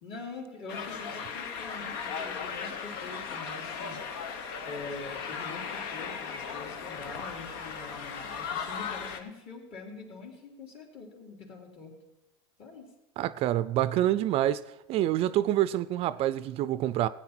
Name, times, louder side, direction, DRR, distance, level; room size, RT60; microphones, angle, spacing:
voice 1, 0.0-4.0 4.6-12.0 12.6-12.9, left 3 dB, 45° left, 3.6 m, -44 dB
sound 1, 0.7-9.2, left 6 dB, 75° left, 1.2 m, -37 dB
voice 2, 13.2-14.6 14.9-17.1, right 13 dB, 50° right, 0.4 m, -27 dB
16.0 x 9.3 x 4.4 m
supercardioid pair, 115°, 13 cm